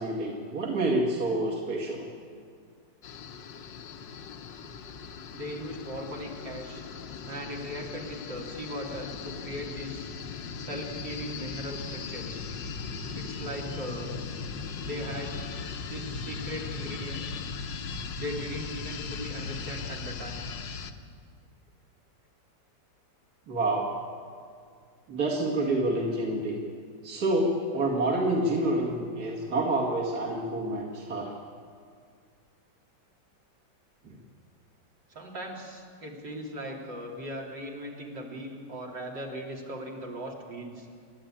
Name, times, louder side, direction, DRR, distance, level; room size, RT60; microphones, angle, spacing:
voice 1, 0.0-2.1 23.5-23.9 25.1-26.6 27.0-31.3, right 2 dB, 60° right, -2 dB, 2.7 m, -28 dB
sound 1, 3.0-20.9, left 5 dB, 85° left, 1.8 m, -38 dB
voice 2, 5.3-6.8 7.3-10.1 10.6-12.5 13.0-14.2 14.8-15.5 15.8-17.3 18.2-20.4 35.1-40.9, equal, 75° right, -2 dB, 3.7 m, -38 dB
30.0 x 12.0 x 9.0 m, 2.2 s
omnidirectional pair, 1.9 m